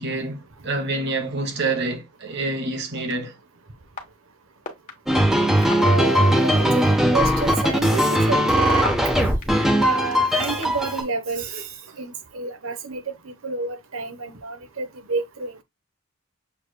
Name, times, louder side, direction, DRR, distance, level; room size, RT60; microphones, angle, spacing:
voice 1, 0.0-3.4 11.9-12.0, right 3 dB, 55° right, 1.4 m, -27 dB
sound 1, 3.1-3.2 4.0-4.1 4.6-4.9 5.6-5.9 6.7-6.8 7.4-9.4 10.1-10.9, left 4 dB, 40° left, 1.4 m, -32 dB
sound 2, 5.1-11.0, equal, ahead, 1.0 m, -19 dB
voice 2, 5.7-8.9 9.8-11.7 12.0-15.6, right 4 dB, 80° right, 1.0 m, -30 dB
7.1 x 3.2 x 2.2 m
head